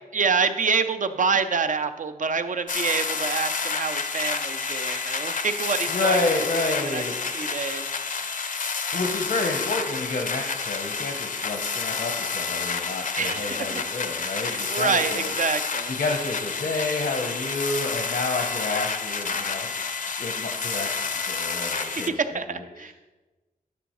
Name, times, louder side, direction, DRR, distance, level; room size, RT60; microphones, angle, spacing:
voice 1, 0.1-6.2 6.5-7.0 7.3-7.9 13.1-13.9 14.5-15.9 21.7-22.9, right 5 dB, 60° right, 10 dB, 0.5 m, -27 dB
sound 1, 2.7-22.1, left 5 dB, 60° left, 0.5 m, -29 dB
voice 2, 5.9-7.2 8.9-15.3 15.9-22.1 22.5-22.6, left 3 dB, 85° left, 1 dB, 0.8 m, -29 dB
10.5 x 5.1 x 3.0 m, 1.2 s
wide cardioid pair, 70°, 15 cm